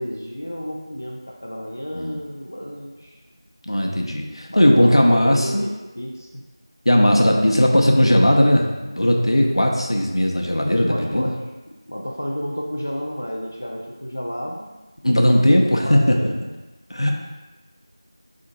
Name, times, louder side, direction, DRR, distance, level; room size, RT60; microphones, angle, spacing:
voice 1, 0.0-3.2 4.5-6.4 10.9-11.3 11.7-14.7 15.8-16.3, equal, 30° left, -1 dB, 0.4 m, -31 dB
voice 2, 3.7-5.7 6.8-11.3 15.0-16.3 16.9-17.1, left 1 dB, 85° left, 0 dB, 0.8 m, -17 dB
5.1 x 3.7 x 2.5 m, 1.2 s
figure-of-eight pair, 180°, 3 cm